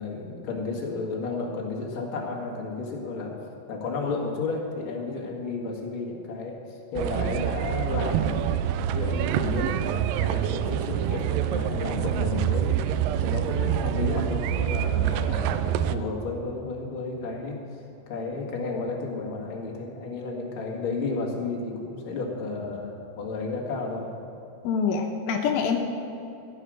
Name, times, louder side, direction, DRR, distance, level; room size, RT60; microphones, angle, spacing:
voice 1, 0.0-8.6 8.9-17.6 18.1-24.1, left 3 dB, 40° left, -1 dB, 2.4 m, -32 dB
sound 1, 7.0-16.0, right 11 dB, 85° right, 1.9 m, -26 dB
voice 2, 24.6-25.8, left 6 dB, 80° left, 3 dB, 2.7 m, -25 dB
15.5 x 10.0 x 6.4 m, 2.8 s
omnidirectional pair, 4.4 m